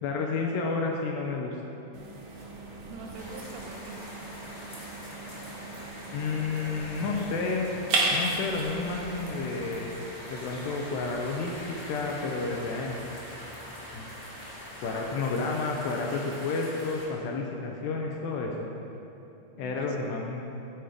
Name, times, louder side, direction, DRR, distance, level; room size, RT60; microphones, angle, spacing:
voice 1, 0.0-1.6 6.1-7.7 8.1-9.9 10.3-13.0 13.9-14.1 14.8-18.7 19.6-20.5, left 4 dB, 75° left, 0 dB, 2.6 m, -31 dB
sound 1, 1.9-9.7, right 2 dB, 65° right, 1.6 m, -35 dB
sound 2, 2.3-15.7, left 2 dB, 60° left, 4.6 m, -51 dB
voice 2, 2.9-4.1 14.8-15.1 19.5-20.0, right 4 dB, 85° right, 3 dB, 3.6 m, -44 dB
sound 3, 3.1-17.0, equal, 10° left, 1.8 m, -44 dB
13.5 x 9.7 x 5.1 m, 3.0 s
omnidirectional pair, 5.6 m